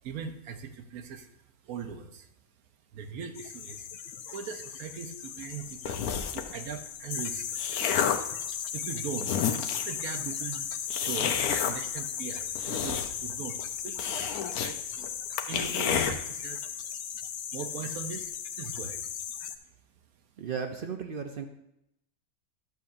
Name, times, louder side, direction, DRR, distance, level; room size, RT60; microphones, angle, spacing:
voice 1, 0.0-1.3 1.6-2.3 2.9-3.9 4.3-6.0 6.3-7.9 8.5-9.4 9.8-10.6 11.0-15.1 15.4-16.7 17.5-19.1, right 6 dB, 80° right, 7 dB, 1.2 m, -40 dB
sound 1, 3.4-19.6, left 8 dB, 65° left, 0.7 m, -37 dB
sound 2, 5.8-6.5 7.2-8.3 8.9-9.0 9.2-10.0 10.9-11.7 12.4-13.3 13.6-13.7 14.0-14.7 15.0-15.1 15.4-16.1, left 8 dB, 85° left, 1.1 m, -29 dB
voice 2, 20.4-21.5, right 6 dB, 60° right, 5 dB, 0.6 m, -35 dB
12.0 x 7.0 x 2.6 m, 0.82 s
omnidirectional pair, 1.5 m